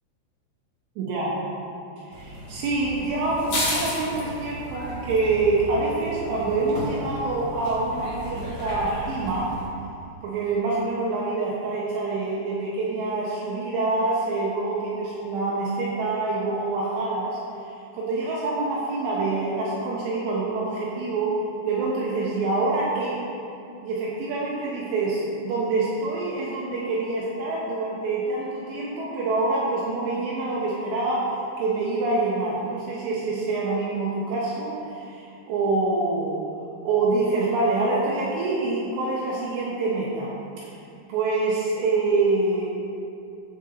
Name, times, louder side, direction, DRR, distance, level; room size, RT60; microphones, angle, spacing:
voice 1, 1.0-1.3 2.0-9.5 10.2-17.4 17.7-21.3 21.6-23.2 23.8-36.4 36.8-40.3 41.1-42.7, right 3 dB, 75° right, -5 dB, 3.1 m, -26 dB
sound 1, 2.1-9.7, left 1 dB, 45° left, 1.7 m, -34 dB
15.5 x 8.0 x 2.7 m, 2.7 s
omnidirectional pair, 5.4 m